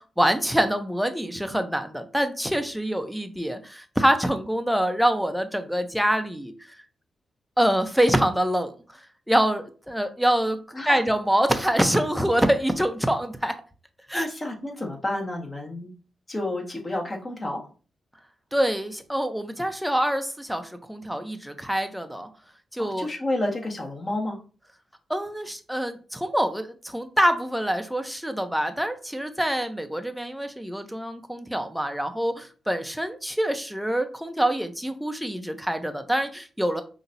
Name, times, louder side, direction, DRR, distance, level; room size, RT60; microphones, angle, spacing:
voice 1, 0.0-6.5 7.6-8.7 9.3-13.5 14.1-14.3 18.5-22.3 22.7-23.1 25.1-36.8, equal, 5° right, 7 dB, 0.8 m, -25 dB
voice 2, 14.1-15.9 16.3-17.6 22.8-24.4, left 1 dB, 35° left, 0 dB, 1.6 m, -30 dB
5.6 x 2.9 x 2.7 m, 0.36 s
cardioid pair, 55°, 0 cm